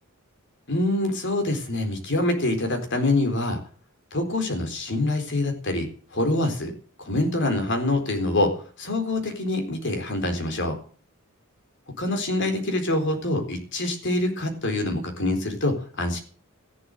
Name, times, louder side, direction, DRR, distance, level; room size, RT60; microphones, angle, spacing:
voice 1, 0.7-3.6 4.1-6.7 7.0-8.5 8.8-10.8 12.0-16.2, left 2 dB, 55° left, 5 dB, 4.1 m, -25 dB
14.0 x 11.5 x 6.7 m, 0.42 s
head